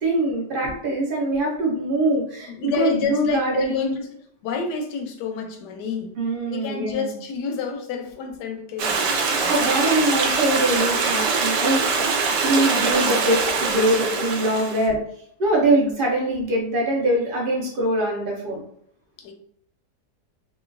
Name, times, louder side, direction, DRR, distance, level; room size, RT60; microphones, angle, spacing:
voice 1, 0.0-3.9 6.2-7.1 9.5-12.1 12.4-15.0 15.4-18.6, right 1 dB, 55° right, -1 dB, 0.6 m, -23 dB
voice 2, 2.5-4.1 4.4-6.1 6.5-9.5 19.2-19.3, left 5 dB, 80° left, 4 dB, 1.2 m, -29 dB
Stream, 8.8-14.9, right 4 dB, 85° right, 1.2 m, -23 dB
3.0 x 2.4 x 2.4 m, 0.67 s
omnidirectional pair, 1.8 m